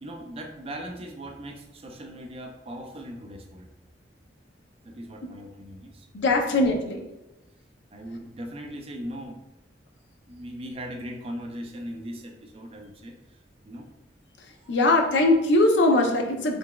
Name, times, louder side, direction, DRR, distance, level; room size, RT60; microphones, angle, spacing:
voice 1, 0.0-3.7 4.8-6.1 6.4-6.6 7.9-9.4 10.3-13.4 13.7-13.9 14.6-14.7, equal, 30° right, 3 dB, 0.4 m, -39 dB
voice 2, 6.1-7.1 14.4-16.6, left 2 dB, 70° left, 2 dB, 0.6 m, -21 dB
3.9 x 3.3 x 2.3 m, 0.97 s
head